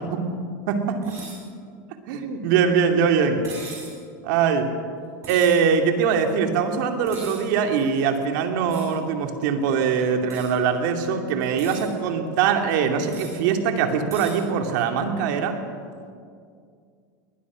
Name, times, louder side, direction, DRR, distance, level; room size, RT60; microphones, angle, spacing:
voice 1, 0.7-1.2 2.1-3.4 4.2-4.7 5.3-15.6, right 6 dB, 70° right, 5 dB, 2.6 m, -22 dB
sound 1, 1.0-1.4 3.4-4.0 5.2-5.6 7.1-7.4 8.7-8.9 10.3-10.5 11.4-11.9 13.1-13.4 14.1-14.4, right 4 dB, 30° right, 7.4 m, -39 dB
20.5 x 20.0 x 6.3 m, 2.2 s
supercardioid pair, 120°, 11 cm